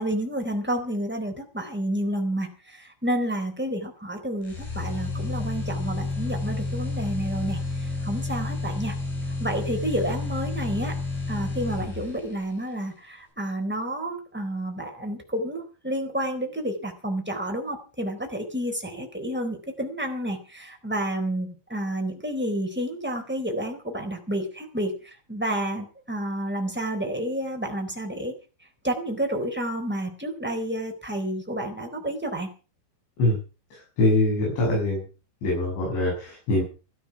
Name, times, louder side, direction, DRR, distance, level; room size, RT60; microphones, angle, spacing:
voice 1, 0.0-7.6 8.0-9.0 9.4-10.9 11.3-24.9 25.3-28.3 28.8-32.5, right 1 dB, 5° right, 2 dB, 3.0 m, -30 dB
sound 1, 4.4-12.4, left 3 dB, 50° left, 8.5 m, -30 dB
voice 2, 34.0-35.0 35.4-36.6, left 1 dB, 70° left, -2 dB, 9.3 m, -23 dB
16.0 x 13.0 x 5.9 m, 0.36 s
omnidirectional pair, 5.5 m